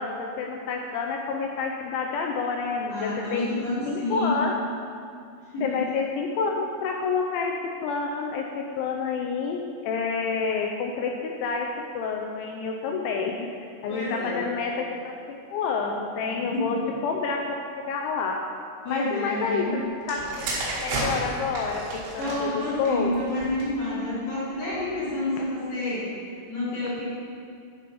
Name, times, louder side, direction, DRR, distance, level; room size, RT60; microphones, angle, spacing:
voice 1, 0.0-3.5 3.9-4.5 5.6-7.5 7.8-11.7 11.9-13.5 13.8-17.4 17.7-18.4 18.9-20.5 20.8-23.1 25.4-25.5, left 5 dB, 85° left, 1 dB, 2.7 m, -29 dB
voice 2, 2.9-4.3 5.5-5.8 13.9-14.5 16.5-16.8 18.8-19.7 22.2-26.1 26.5-27.0, left 2 dB, 40° left, -10 dB, 3.0 m, -29 dB
sound 1, 20.0-23.9 24.6-24.9, right 2 dB, 90° right, 4.8 m, -32 dB
11.5 x 4.5 x 5.3 m, 2.4 s
omnidirectional pair, 5.8 m